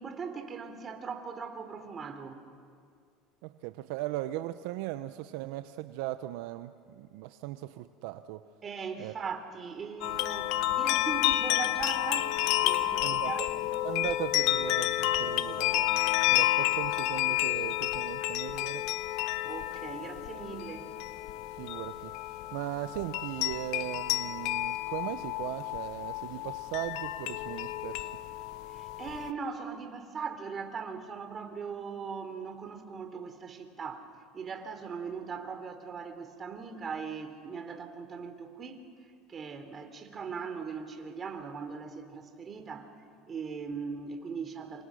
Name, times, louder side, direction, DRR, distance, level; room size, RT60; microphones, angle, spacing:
voice 1, 0.0-2.4 8.6-13.6 19.4-20.9 28.7-34.1 34.3-38.8 39.3-43.0 43.3-44.8, right 5 dB, 35° right, 7 dB, 3.5 m, -39 dB
voice 2, 3.4-8.4 9.0-9.1 13.0-13.5 13.8-16.0 16.3-18.9 21.6-22.2 22.5-28.2, right 15 dB, 75° right, 11 dB, 0.8 m, -38 dB
sound 1, 10.0-29.3, left 15 dB, 70° left, 0.9 m, -30 dB
28.0 x 27.0 x 6.4 m, 2.2 s
supercardioid pair, 100°, 0 cm